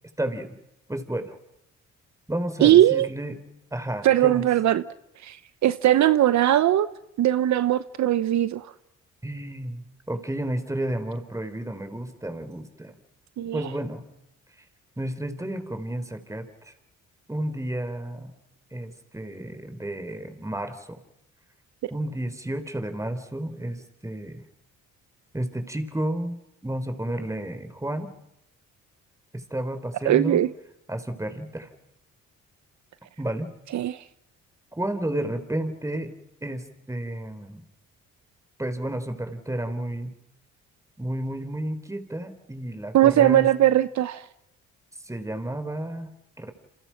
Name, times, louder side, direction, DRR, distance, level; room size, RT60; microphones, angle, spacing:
voice 1, 0.2-0.6 0.9-1.4 2.3-3.4 3.7-4.5 9.2-12.9 13.5-14.0 15.0-16.7 17.3-18.3 18.7-21.0 21.9-24.4 25.3-28.1 29.3-30.4 30.9-31.7 33.2-33.5 34.8-36.1 36.4-37.6 38.6-40.2 41.0-43.5 45.0-46.1 46.4-46.5, right 1 dB, 10° right, 9 dB, 4.3 m, -31 dB
voice 2, 2.6-3.1 4.0-4.8 5.2-5.4 5.6-6.9 7.2-8.7 13.4-13.6 30.0-30.5 33.7-34.0 42.9-44.2, right 12 dB, 65° right, 13 dB, 1.0 m, -19 dB
29.5 x 27.0 x 6.0 m, 0.86 s
cardioid pair, 90°, 30 cm